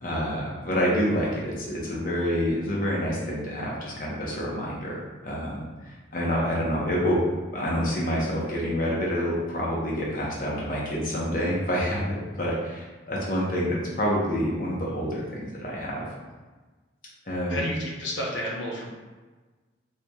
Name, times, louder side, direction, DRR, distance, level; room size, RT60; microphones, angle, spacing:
voice 1, 0.0-5.6 6.1-7.2 7.5-16.0 17.3-17.6, equal, 45° left, -4 dB, 0.8 m, -27 dB
voice 2, 17.5-18.9, equal, 85° left, -3 dB, 0.7 m, -31 dB
4.1 x 3.2 x 2.3 m, 1.3 s
head